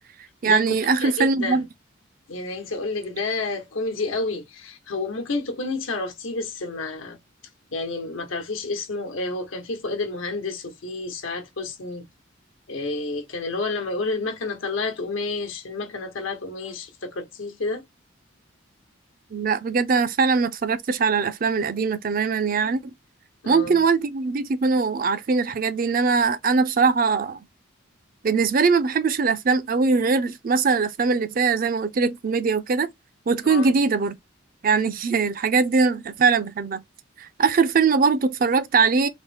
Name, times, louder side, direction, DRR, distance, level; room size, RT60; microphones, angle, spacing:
voice 1, 0.4-1.6 19.3-22.8 23.5-27.4 28.2-32.9 33.3-34.1 34.6-36.8 37.2-39.1, right 4 dB, 45° right, 0.4 m, -21 dB
voice 2, 1.0-1.6 2.3-7.2 7.7-12.1 12.7-17.8 23.4-23.8 33.5-33.8, left 3 dB, 80° left, 1.1 m, -30 dB
3.8 x 2.0 x 3.3 m
head